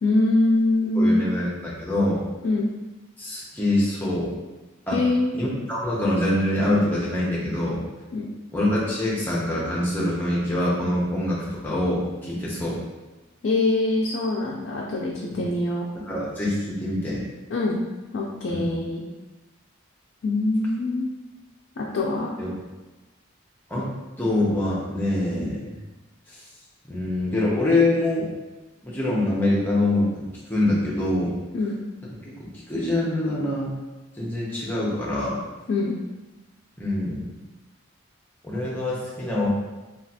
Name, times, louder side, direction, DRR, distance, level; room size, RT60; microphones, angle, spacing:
voice 1, 0.0-1.2 2.4-2.7 4.9-5.4 8.1-8.3 13.4-15.8 17.5-17.8 18.1-19.0 20.2-21.1 21.8-22.3 31.5-31.8 35.7-36.0, left 2 dB, 55° left, -3 dB, 0.4 m, -23 dB
voice 2, 0.9-2.2 3.2-4.3 4.9-5.0 5.3-7.8 8.5-12.8 15.4-15.5 16.1-17.2 18.5-18.7 22.4-22.5 23.7-23.9 24.2-25.8 26.9-28.3 28.8-30.2 30.5-31.4 32.2-32.3 32.7-33.8 34.2-35.4 36.8-37.3 38.4-39.5, left 1 dB, 10° left, -6 dB, 0.6 m, -24 dB
3.1 x 2.3 x 2.7 m, 1.1 s
head